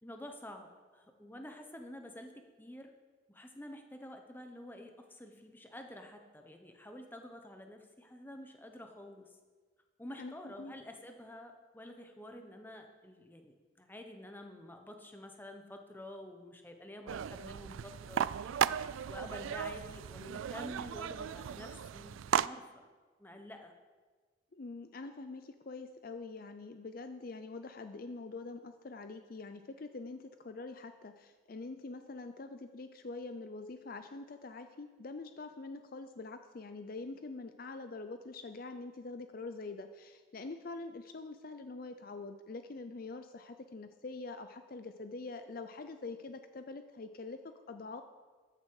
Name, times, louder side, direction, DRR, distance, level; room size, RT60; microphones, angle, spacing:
voice 1, 0.0-2.9 3.3-9.4 10.0-18.6 19.1-22.9 23.2-23.7, left 1 dB, 10° left, 4 dB, 1.1 m, -49 dB
voice 2, 10.2-10.7 24.5-48.0, left 3 dB, 45° left, 8 dB, 0.5 m, -45 dB
sound 1, 17.1-22.5, right 9 dB, 85° right, 0.3 m, -35 dB
14.0 x 9.6 x 4.8 m, 1.4 s
head